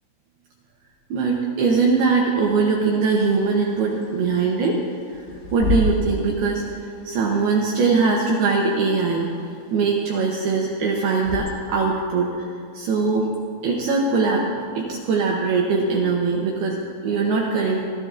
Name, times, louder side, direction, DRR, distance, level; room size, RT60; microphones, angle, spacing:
voice 1, 1.1-4.8 5.5-6.6 7.0-9.3 9.7-12.5 12.7-13.3 13.6-17.8, right 4 dB, 75° right, -2 dB, 2.4 m, -21 dB
Bird / Wind, 3.2-11.9, left 1 dB, 85° left, 1.9 m, -32 dB
24.0 x 14.0 x 2.5 m, 2.3 s
omnidirectional pair, 5.7 m